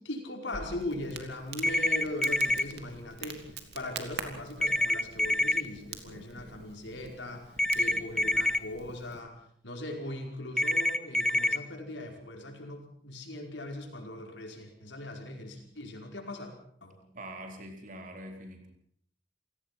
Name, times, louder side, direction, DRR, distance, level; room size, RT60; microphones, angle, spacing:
voice 1, 0.0-9.3 9.6-16.5 16.8-17.0, left 1 dB, 80° left, 2 dB, 5.1 m, -40 dB
Crackle, 0.5-9.2, right 5 dB, 65° right, 2.7 m, -45 dB
sound 1, 1.6-2.6 4.6-5.6 7.6-8.6 10.6-11.6, left 1 dB, 5° left, 0.9 m, -26 dB
voice 2, 17.1-18.7, right 1 dB, 50° right, 3 dB, 4.1 m, -43 dB
28.0 x 17.0 x 6.0 m, 0.65 s
head